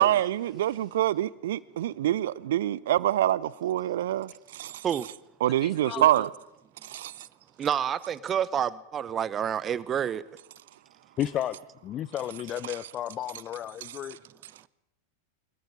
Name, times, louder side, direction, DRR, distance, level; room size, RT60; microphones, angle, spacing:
voice 1, 0.0-4.8 5.4-6.3 6.8-7.1, right 13 dB, 55° right, 0.7 m, -26 dB
voice 2, 5.6-6.3 11.2-14.2, left 11 dB, 30° left, 0.7 m, -33 dB
voice 3, 7.6-10.2, right 9 dB, 25° right, 1.0 m, -28 dB
24.5 x 22.5 x 5.1 m
figure-of-eight pair, 90°, 0 cm